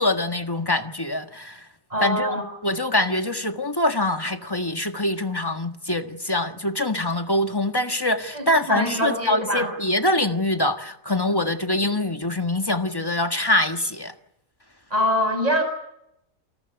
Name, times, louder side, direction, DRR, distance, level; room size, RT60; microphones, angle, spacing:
voice 1, 0.0-1.6 2.0-2.3 2.6-14.1, left 1 dB, 15° left, 6 dB, 1.5 m, -24 dB
voice 2, 1.9-2.4 8.3-9.7 14.9-15.6, equal, 25° right, 6 dB, 7.3 m, -24 dB
29.0 x 19.5 x 8.0 m, 0.81 s
omnidirectional pair, 1.5 m